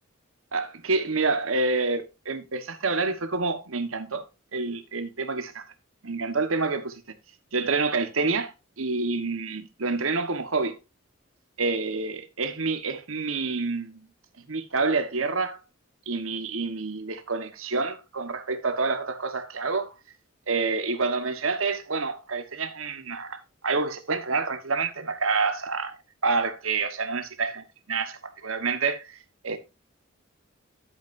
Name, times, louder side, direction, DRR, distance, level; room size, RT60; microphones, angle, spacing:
voice 1, 0.5-4.2 4.5-5.6 6.0-7.1 7.5-10.7 11.6-14.1 14.5-15.6 16.1-19.9 20.5-25.9 26.2-29.2 29.4-29.6, right 4 dB, 80° right, 1.4 m, -28 dB
11.5 x 8.2 x 2.6 m
head